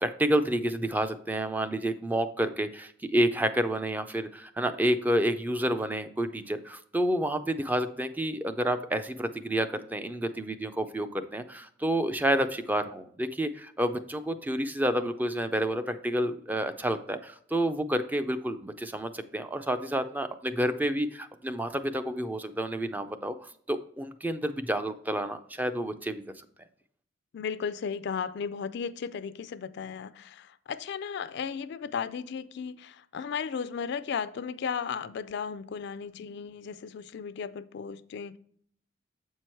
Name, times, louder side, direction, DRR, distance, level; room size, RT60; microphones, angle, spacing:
voice 1, 0.0-26.5, right 1 dB, 10° right, 0.4 m, -29 dB
voice 2, 27.3-38.4, left 6 dB, 60° left, 0.4 m, -35 dB
7.6 x 4.6 x 4.4 m
head